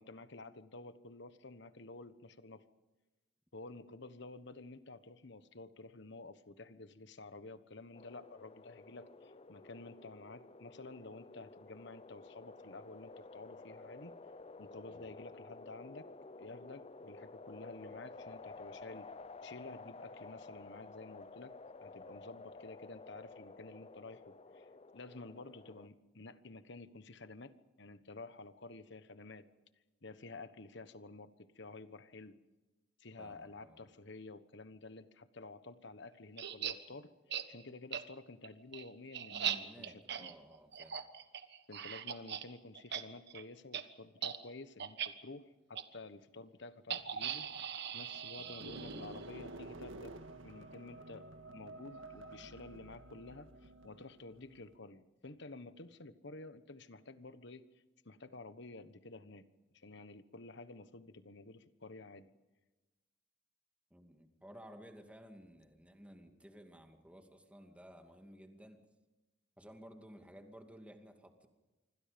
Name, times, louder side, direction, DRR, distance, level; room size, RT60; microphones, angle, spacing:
voice 1, 0.0-2.7 3.5-14.2 14.6-16.1 16.4-19.1 19.4-21.6 21.8-29.5 30.0-32.4 33.0-40.3 41.7-47.5 47.9-50.1 50.4-57.7 58.0-59.5 59.7-62.3, left 3 dB, 60° left, 12 dB, 1.3 m, -51 dB
sound 1, 7.9-25.9, left 3 dB, 30° left, 0.7 m, -52 dB
voice 2, 33.2-33.8 39.3-41.0 48.4-48.6 63.9-68.8 69.6-71.5, equal, 5° right, 4 dB, 2.5 m, -55 dB
sound 2, 36.4-36.7 37.3-37.4 37.9-38.0 38.4-42.4 42.7-43.0 43.3-43.4 43.7-43.8 44.2-44.4 44.8-45.1 45.7-45.8 46.9-49.2, right 9 dB, 60° right, 1.4 m, -40 dB
sound 3, 47.0-54.8, right 2 dB, 80° right, 1.8 m, -51 dB
27.0 x 25.0 x 5.3 m, 1.1 s
head